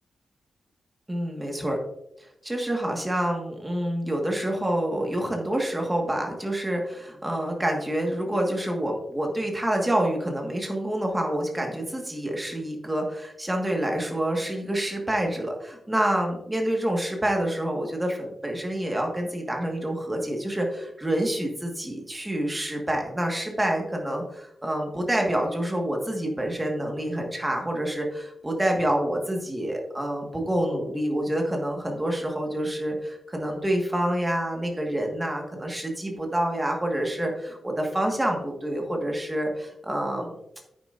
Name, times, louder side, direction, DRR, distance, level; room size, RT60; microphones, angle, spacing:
voice 1, 1.1-1.8 2.4-40.3, right 1 dB, 10° right, 1 dB, 1.5 m, -27 dB
10.0 x 9.7 x 2.5 m, 0.82 s
wide cardioid pair, 180°, 0 cm